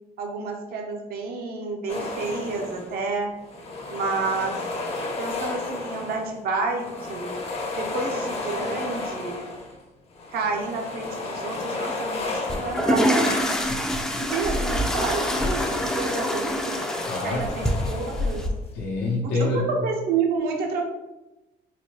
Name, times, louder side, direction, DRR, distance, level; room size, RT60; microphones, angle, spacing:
voice 1, 0.2-3.3 3.9-4.6 5.2-7.3 7.8-9.4 10.3-13.4 14.2-16.8 17.2-18.4 19.3-20.9, right 4 dB, 65° right, 2 dB, 0.6 m, -29 dB
sound 1, 1.9-3.0 3.4-6.4 6.7-9.8 10.1-14.0 14.3-18.6, left 3 dB, 35° left, 0.7 m, -33 dB
sound 2, 12.5-18.5, equal, 5° left, 0.4 m, -25 dB
voice 2, 13.7-14.5 15.8-16.1 17.0-17.5 18.7-19.7, left 2 dB, 80° left, -5 dB, 0.7 m, -29 dB
3.9 x 2.2 x 3.1 m, 0.99 s
cardioid pair, 110°, 17 cm